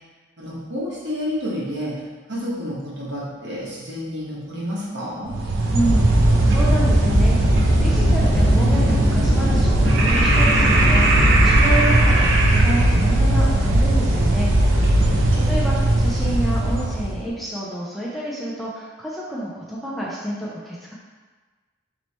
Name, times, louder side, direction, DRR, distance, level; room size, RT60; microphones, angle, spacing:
voice 1, 0.4-2.0 2.3-5.3 14.9-15.5, equal, 65° right, -7 dB, 1.2 m, -30 dB
sound 1, 5.3-17.2, right 1 dB, 85° right, 0.5 m, -18 dB
voice 2, 5.7-14.5 15.3-20.9, right 1 dB, ahead, -7 dB, 0.5 m, -29 dB
sound 2, 5.8-12.8, left 1 dB, 40° left, 0.9 m, -23 dB
3.2 x 3.0 x 4.1 m, 1.4 s
head